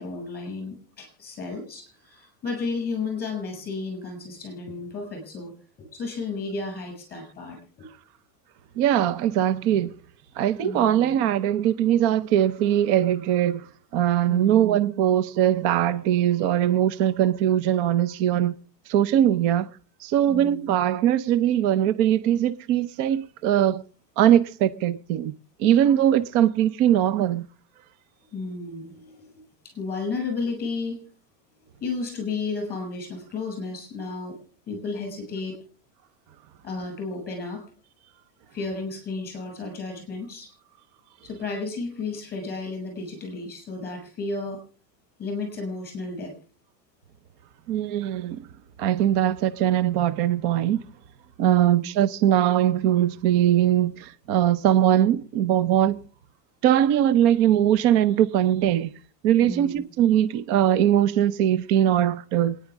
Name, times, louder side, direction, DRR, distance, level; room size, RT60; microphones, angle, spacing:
voice 1, 0.0-5.5 5.9-7.9 10.6-11.1 14.3-14.7 20.3-20.7 28.3-31.0 31.8-34.4 34.7-35.6 36.6-37.6 38.5-40.5 41.2-44.6 45.2-46.3 51.4-51.9 59.4-59.8, left 3 dB, 20° left, 6.7 m, -33 dB
voice 2, 8.8-9.9 10.4-13.7 13.9-18.6 18.9-19.7 20.0-23.8 24.2-25.3 25.6-27.5 47.7-48.4 48.8-50.8 51.4-56.0 56.6-58.9 59.2-62.6, right 11 dB, 40° right, 0.6 m, -21 dB
27.0 x 10.0 x 3.5 m
supercardioid pair, 165°, 49 cm